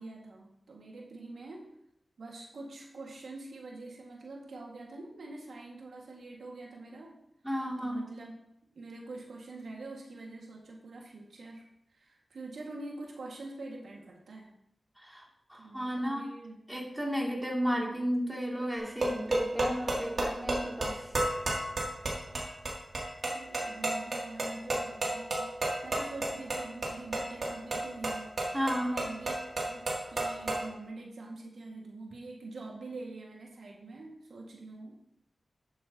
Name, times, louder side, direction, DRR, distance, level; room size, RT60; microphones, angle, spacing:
voice 1, 0.0-1.7 2.2-7.2 7.8-8.3 8.7-11.7 11.9-14.5 15.6-16.6 23.3-29.3 29.7-35.0, right 2 dB, 85° right, -1 dB, 1.9 m, -45 dB
voice 2, 7.4-8.0 15.0-15.2 15.5-16.3 16.7-21.1 28.5-28.9, equal, 5° right, -3 dB, 2.7 m, -33 dB
sound 1, 18.8-30.7, right 1 dB, 65° right, 2.7 m, -33 dB
11.0 x 9.3 x 2.9 m, 0.77 s
cardioid pair, 65°, 0 cm